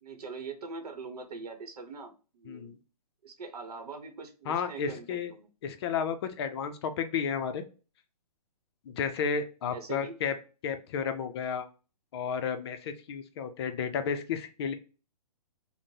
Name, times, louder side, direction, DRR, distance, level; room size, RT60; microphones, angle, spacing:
voice 1, 0.0-2.7 3.2-5.5 9.7-10.1, right 4 dB, 70° right, 6 dB, 0.8 m, -42 dB
voice 2, 2.4-2.8 4.5-5.3 5.6-7.6 8.8-10.3 10.6-11.7 12.1-14.7, left 6 dB, 40° left, 8 dB, 0.5 m, -32 dB
3.6 x 2.1 x 2.8 m, 0.34 s
hypercardioid pair, 135°, 20 cm